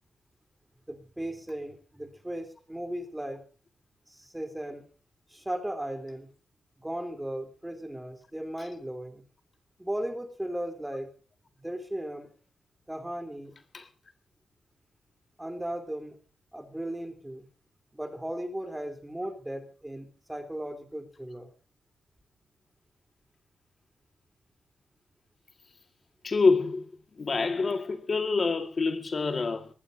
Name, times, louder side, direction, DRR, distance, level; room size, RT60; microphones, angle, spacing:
voice 1, 0.9-3.4 4.1-4.8 5.3-6.3 6.8-9.2 9.8-11.1 11.6-12.3 12.9-13.5 15.4-16.2 16.5-17.5 17.9-21.5, right 1 dB, 10° right, 3.5 m, -36 dB
voice 2, 26.2-26.9 27.2-29.7, left 4 dB, 35° left, 1.8 m, -26 dB
24.0 x 20.0 x 2.7 m
wide cardioid pair, 130°, 0 cm